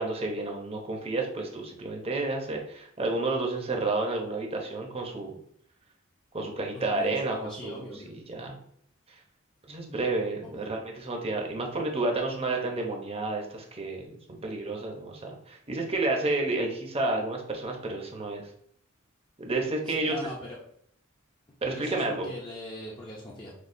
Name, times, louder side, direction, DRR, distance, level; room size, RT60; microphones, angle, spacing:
voice 1, 0.0-5.3 6.3-8.6 9.7-18.4 19.4-20.3 21.6-22.3, right 2 dB, 30° right, 1 dB, 0.8 m, -31 dB
voice 2, 6.7-8.1 10.4-10.7 19.9-20.6 21.6-23.5, left 1 dB, 20° left, -5 dB, 0.7 m, -41 dB
6.2 x 2.3 x 2.6 m, 0.66 s
head